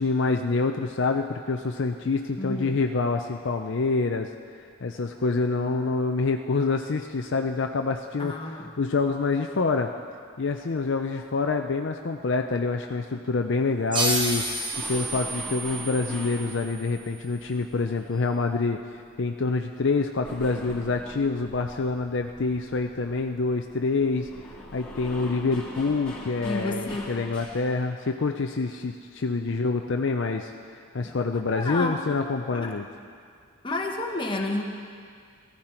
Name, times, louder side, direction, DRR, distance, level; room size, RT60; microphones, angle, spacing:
voice 1, 0.0-4.3 4.8-9.9 10.4-14.5 14.9-24.3 24.7-32.9, left 3 dB, 55° left, 4 dB, 0.5 m, -26 dB
voice 2, 2.4-2.8 8.2-8.7 26.4-27.1 31.0-31.1 31.6-32.1 32.5-32.7 33.6-34.6, left 2 dB, 20° left, 1 dB, 1.2 m, -30 dB
sound 1, 13.9-17.2, right 2 dB, 20° right, 1.1 m, -30 dB
sound 2, 14.7-19.0 19.3-27.8, left 1 dB, 5° left, 2.9 m, -43 dB
19.0 x 14.5 x 4.4 m, 2.2 s
head